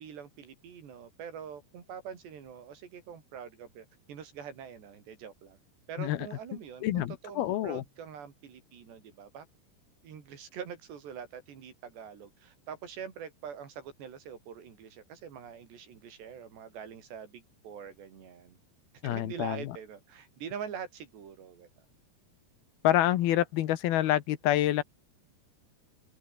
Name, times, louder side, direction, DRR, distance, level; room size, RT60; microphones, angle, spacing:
voice 1, 0.0-5.6 5.9-9.5 10.0-18.6 19.0-21.7, right 7 dB, 80° right, 6.0 m, -44 dB
voice 2, 6.8-7.8 19.0-19.6 22.8-24.8, left 13 dB, 70° left, 3.0 m, -27 dB
omnidirectional pair, 4.8 m